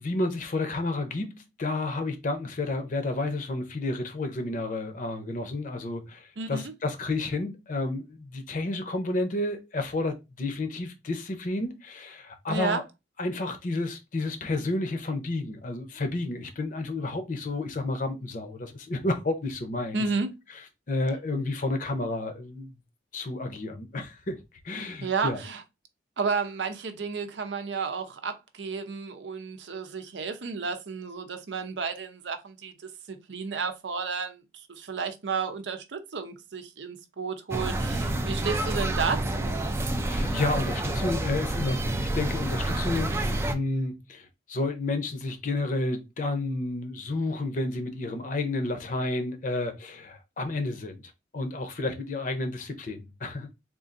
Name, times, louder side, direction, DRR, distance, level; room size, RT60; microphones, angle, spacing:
voice 1, 0.0-12.8 13.2-20.1 20.9-22.8 23.1-24.4 24.6-25.4 40.0-51.0 51.3-53.5, left 2 dB, 45° left, 0.7 m, -31 dB
voice 2, 12.5-12.8 19.9-20.3 25.0-25.6 26.2-32.7 33.1-39.6, right 5 dB, 80° right, 0.6 m, -32 dB
sound 1, 37.5-43.5, right 1 dB, 15° right, 0.3 m, -28 dB
3.7 x 2.5 x 2.5 m
head